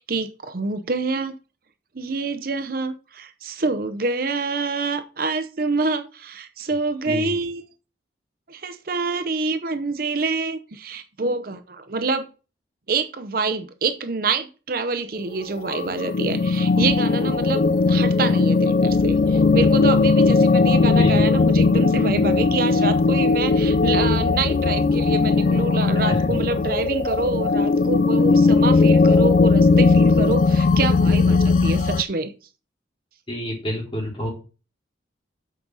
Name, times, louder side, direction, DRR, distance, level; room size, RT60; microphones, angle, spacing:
voice 1, 0.0-1.4 1.9-7.6 8.5-12.3 12.9-32.3, right 3 dB, 55° right, 0.7 m, -26 dB
sound 1, 15.6-32.0, left 3 dB, 45° left, 0.3 m, -18 dB
voice 2, 21.0-21.3 26.1-26.4 33.3-34.3, left 1 dB, 30° left, 4.3 m, -29 dB
8.4 x 6.1 x 4.0 m
head